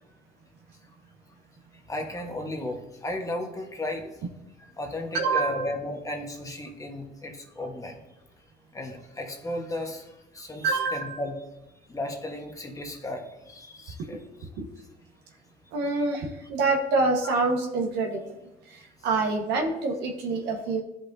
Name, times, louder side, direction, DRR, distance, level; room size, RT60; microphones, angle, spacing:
voice 1, 1.7-4.2 4.6-8.0 8.7-11.4 11.9-14.5, left 1 dB, 20° left, 2 dB, 1.2 m, -35 dB
voice 2, 5.1-5.6 10.6-11.2 14.0-14.1 14.6-14.7 15.7-18.2 18.7-20.8, right 3 dB, 85° right, 2 dB, 1.3 m, -26 dB
12.5 x 5.4 x 2.7 m, 0.95 s
cardioid pair, 110°, 17 cm